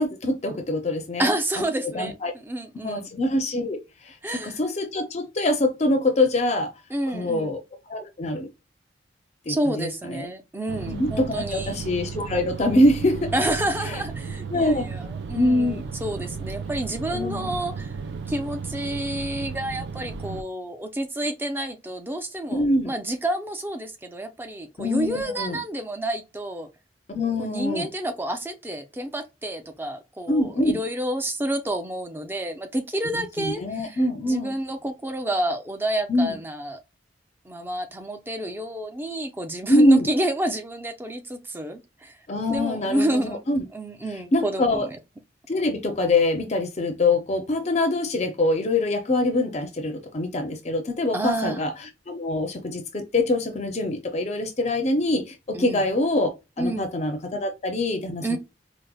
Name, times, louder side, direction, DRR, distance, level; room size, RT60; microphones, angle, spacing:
voice 1, 0.0-1.3 1.9-2.3 2.8-6.7 7.1-7.6 7.9-8.5 9.5-10.2 10.9-13.3 14.5-14.9 15.3-15.8 17.1-17.5 22.5-22.9 24.8-25.6 27.1-27.9 30.3-30.8 33.1-34.5 36.1-36.3 39.7-40.1 42.3-43.6 44.3-44.9 45.5-51.7 52.1-58.4, left 1 dB, 40° left, 0.5 m, -24 dB
voice 2, 1.2-3.1 4.2-4.6 6.9-7.6 9.5-11.8 13.3-17.9 18.3-26.7 27.4-34.0 34.3-36.8 37.4-42.1 42.5-43.4 43.7-45.0 51.1-51.7 55.5-55.8 56.6-56.9 58.2-58.4, right 1 dB, 10° right, 0.5 m, -29 dB
sound 1, 10.7-20.4, right 5 dB, 70° right, 0.4 m, -34 dB
4.7 x 2.1 x 2.3 m
head